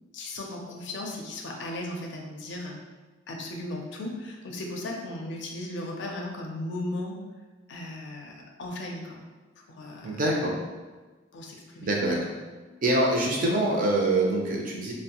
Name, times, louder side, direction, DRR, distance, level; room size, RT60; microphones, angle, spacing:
voice 1, 0.1-2.7 3.3-7.2 7.7-9.2 9.7-10.2 11.3-11.9, left 1 dB, 60° left, 0 dB, 0.4 m, -36 dB
voice 2, 10.0-10.5 11.8-12.3 12.8-14.9, right 1 dB, 45° right, -2 dB, 0.5 m, -25 dB
2.6 x 2.1 x 2.8 m, 1.3 s
head